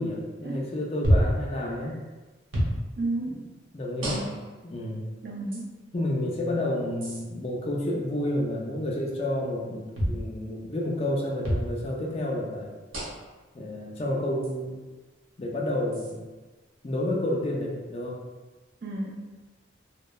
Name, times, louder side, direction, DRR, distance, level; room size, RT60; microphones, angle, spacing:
voice 1, 0.0-1.9 3.3-3.5 3.7-4.3 4.6-5.1 5.9-12.7 13.5-14.8 15.4-16.2 16.8-18.2, left 1 dB, 30° left, -2 dB, 0.4 m, -30 dB
sound 1, 1.0-1.4 2.5-2.8 4.0-4.5 5.5-5.6 7.0-7.2 9.9-10.2 11.4-11.7 12.9-13.3 14.4-14.5 15.9-16.1, equal, 85° right, 0.7 m, -26 dB
voice 2, 3.0-3.4 4.0-4.4 5.2-5.7 18.8-19.1, right 2 dB, 55° right, -1 dB, 0.4 m, -32 dB
3.0 x 2.0 x 2.2 m, 1.2 s
head